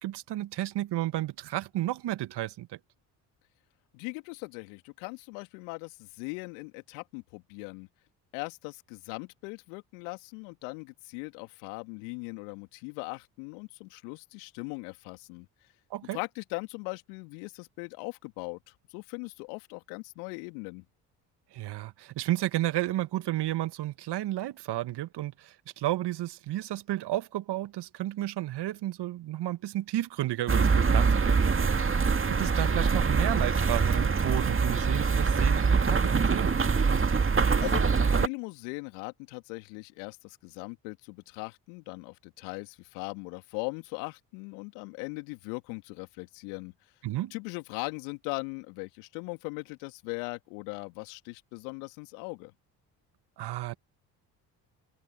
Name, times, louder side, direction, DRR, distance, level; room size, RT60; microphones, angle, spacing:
voice 1, 0.0-2.8 15.9-16.2 21.5-31.4 32.3-36.6 47.0-47.3 53.4-53.8, right 14 dB, 55° right, 1.9 m, -32 dB
voice 2, 3.9-7.9 8.3-15.5 16.1-20.8 37.6-46.7 47.3-52.5, left 33 dB, 70° left, 2.7 m, -39 dB
sound 1, 30.5-38.3, right 5 dB, 25° right, 2.2 m, -24 dB
open air
hypercardioid pair, 50°, 48 cm